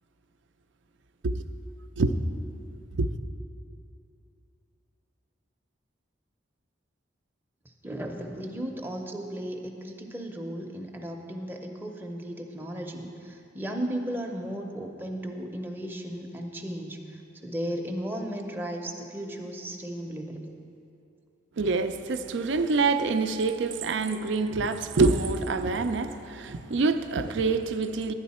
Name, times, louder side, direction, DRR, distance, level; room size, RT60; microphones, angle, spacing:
voice 1, 7.8-17.0 17.4-20.5, equal, 10° right, 0.6 m, -35 dB
voice 2, 21.6-28.1, right 3 dB, 70° right, 0.5 m, -26 dB
11.0 x 9.6 x 4.2 m
head